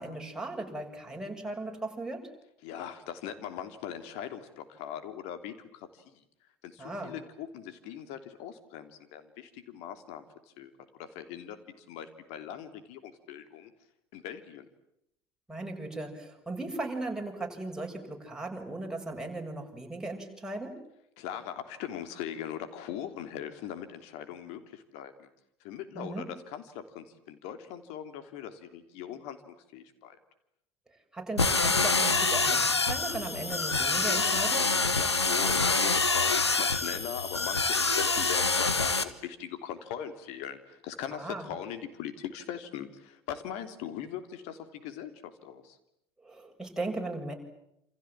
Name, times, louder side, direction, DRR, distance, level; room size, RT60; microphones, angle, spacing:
voice 1, 0.0-2.3 6.8-7.1 15.5-20.8 26.0-26.3 31.1-34.7 41.1-41.5 46.2-47.3, right 2 dB, 5° right, 1 dB, 6.9 m, -37 dB
voice 2, 2.6-6.2 6.6-10.2 10.6-10.7 11.0-13.7 14.1-14.7 21.2-25.3 25.6-30.2 35.0-45.8, left 9 dB, 55° left, 9 dB, 3.2 m, -40 dB
sound 1, 31.4-39.0, left 3 dB, 85° left, 1.4 m, -26 dB
28.0 x 28.0 x 7.5 m, 0.81 s
figure-of-eight pair, 70°, 14 cm